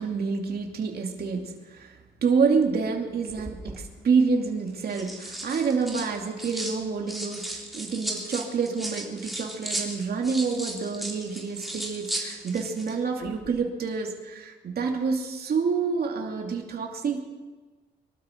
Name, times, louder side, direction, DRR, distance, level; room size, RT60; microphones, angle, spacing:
voice 1, 0.0-17.2, right 5 dB, 50° right, 2 dB, 2.7 m, -28 dB
sound 1, 3.3-3.8 4.7-6.8 7.1-12.9 13.2-13.5, right 1 dB, ahead, 3.6 m, -35 dB
24.0 x 12.5 x 4.6 m, 1.3 s
cardioid pair, 90°, 20 cm